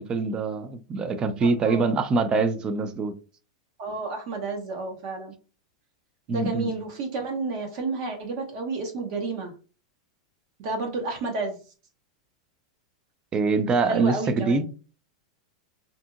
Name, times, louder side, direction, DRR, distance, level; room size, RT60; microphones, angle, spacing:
voice 1, 0.0-3.1 6.3-6.7 13.3-14.7, right 3 dB, 25° right, 0.4 m, -24 dB
voice 2, 1.4-1.9 3.8-5.3 6.3-9.5 10.6-11.6 13.8-14.6, right 3 dB, 50° right, 0.7 m, -31 dB
2.7 x 2.7 x 2.4 m
supercardioid pair, 130°, 3 cm